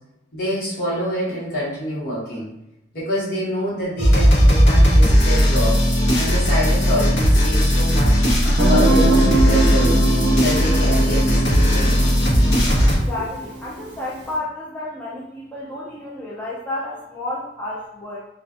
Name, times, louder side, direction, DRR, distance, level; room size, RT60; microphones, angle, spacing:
voice 1, 0.3-2.5 2.9-5.8 6.1-8.2 8.6-10.0 10.4-12.0, equal, 55° left, -7 dB, 1.1 m, -26 dB
sound 1, 4.0-13.0, equal, 90° left, 0.9 m, -16 dB
Guitar, 8.6-14.1, right 2 dB, 65° right, 0.5 m, -23 dB
voice 2, 12.8-18.3, left 2 dB, 10° left, -7 dB, 0.4 m, -31 dB
2.3 x 2.2 x 2.5 m, 0.87 s
head